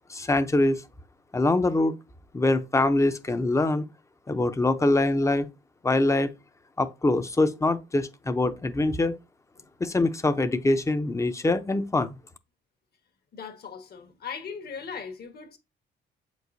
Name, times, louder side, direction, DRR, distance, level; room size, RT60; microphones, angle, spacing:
voice 1, 0.1-0.8 1.3-2.0 2.3-3.9 4.3-5.5 5.8-6.3 6.8-9.2 9.8-12.2, left 2 dB, 15° left, 0.6 m, -24 dB
voice 2, 13.3-15.6, left 6 dB, 55° left, 1.3 m, -39 dB
7.6 x 4.6 x 2.7 m
cardioid pair, 90°, 20 cm